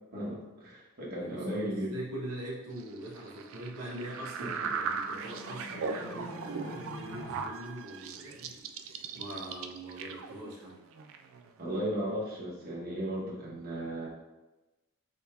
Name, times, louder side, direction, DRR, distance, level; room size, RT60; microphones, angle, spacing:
voice 1, 0.1-1.9 4.4-4.7 11.6-14.1, right 1 dB, 45° right, -5 dB, 1.2 m, -35 dB
voice 2, 1.2-10.8, right 1 dB, 75° right, -5 dB, 0.9 m, -42 dB
sound 1, 2.8-11.8, right 5 dB, 60° right, 0.3 m, -39 dB
sound 2, 4.3-7.4, left 2 dB, 45° left, 0.6 m, -46 dB
3.5 x 2.8 x 4.6 m, 1.1 s
head